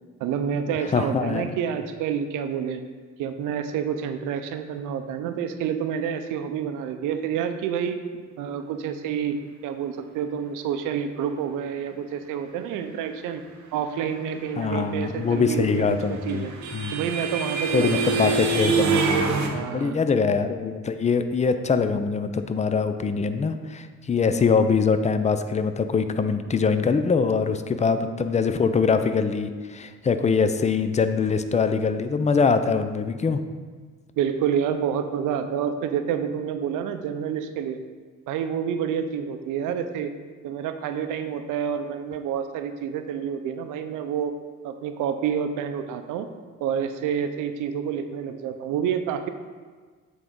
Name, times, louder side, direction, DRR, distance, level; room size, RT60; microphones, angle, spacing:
voice 1, 0.2-2.8 3.2-9.4 9.6-13.4 13.7-15.9 16.3-16.5 16.9-18.4 19.5-20.0 34.2-37.8 38.3-40.1 40.4-44.3 44.6-46.3 46.6-49.3, right 8 dB, 90° right, 8 dB, 0.6 m, -28 dB
voice 2, 0.9-1.5 14.6-16.4 16.7-17.0 17.7-33.4, left 5 dB, 25° left, 9 dB, 0.4 m, -23 dB
sound 1, 15.6-19.5, right 5 dB, 65° right, 0.9 m, -25 dB
8.1 x 3.9 x 3.7 m, 1.5 s
cardioid pair, 90°, 30 cm